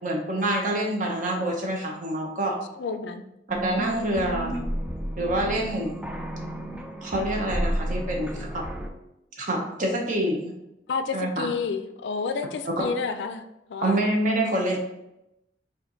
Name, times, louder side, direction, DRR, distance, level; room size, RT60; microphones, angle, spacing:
voice 1, 0.0-2.6 3.5-4.6 5.2-5.9 7.0-8.6 9.4-10.5 11.1-11.5 12.6-12.9 13.8-14.8, right 1 dB, 50° right, 1 dB, 0.9 m, -26 dB
voice 2, 2.8-3.2 10.9-14.0, left 5 dB, 75° left, 8 dB, 0.4 m, -30 dB
sound 1, 3.5-8.9, right 1 dB, 5° right, 0.3 m, -32 dB
4.4 x 2.5 x 3.8 m, 0.88 s
head